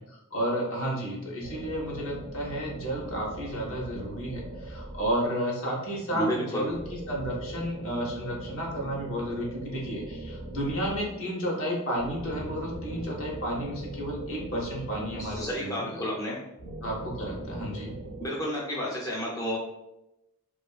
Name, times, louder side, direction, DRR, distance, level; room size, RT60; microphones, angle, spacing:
voice 1, 0.3-16.0 16.8-17.9, equal, 70° left, -2 dB, 0.7 m, -32 dB
sound 1, 1.4-5.6 6.7-11.3 12.0-16.0 16.6-18.3, right 1 dB, 55° right, 0.5 m, -40 dB
voice 2, 6.1-6.7 15.1-16.4 18.2-19.6, equal, 15° left, -5 dB, 0.3 m, -31 dB
2.4 x 2.4 x 2.2 m, 0.92 s
head